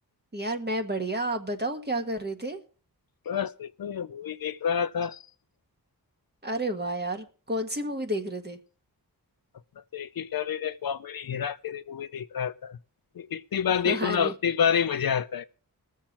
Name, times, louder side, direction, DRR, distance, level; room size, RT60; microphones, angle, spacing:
voice 1, 0.3-2.6 6.4-8.6 13.8-14.3, right 1 dB, 25° right, 1.6 m, -30 dB
voice 2, 3.3-5.2 9.9-12.8 13.2-15.4, left 7 dB, 65° left, 0.6 m, -28 dB
20.0 x 7.4 x 4.3 m
wide cardioid pair, 70°, 39 cm